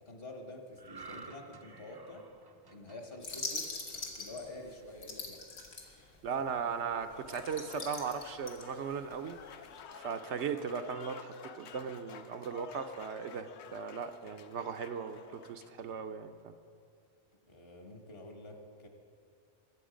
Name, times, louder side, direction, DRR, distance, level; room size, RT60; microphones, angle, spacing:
voice 1, 0.1-2.3 2.7-5.5 6.3-6.4 17.4-18.9, left 2 dB, 50° left, 3 dB, 1.6 m, -48 dB
sound 1, 0.8-4.2 4.7-4.9, right 4 dB, 30° right, 0.4 m, -52 dB
sound 2, 3.2-6.2 6.6-6.7 7.0-9.6, left 3 dB, 85° left, 1.9 m, -42 dB
voice 2, 6.2-9.4 10.0-16.5, right 6 dB, 70° right, 7 dB, 0.9 m, -38 dB
Applause / Crowd, 7.0-15.8, left 6 dB, 70° left, 0.9 m, -52 dB
21.5 x 7.9 x 5.1 m, 2.4 s
omnidirectional pair, 1.3 m